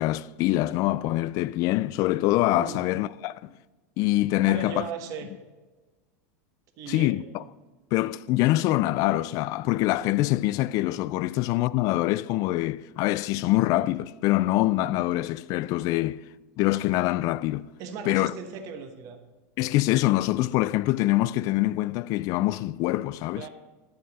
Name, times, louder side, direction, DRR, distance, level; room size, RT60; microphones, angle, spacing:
voice 1, 0.0-3.5 4.0-4.9 6.9-7.4 7.9-16.2 16.6-17.7 18.1-18.3 19.6-23.5, left 17 dB, 45° left, 0.3 m, -24 dB
voice 2, 2.6-2.9 4.4-5.3 6.8-7.2 17.8-19.2 23.3-23.5, right 6 dB, 45° right, 1.3 m, -37 dB
10.5 x 7.6 x 4.2 m
supercardioid pair, 130°, 8 cm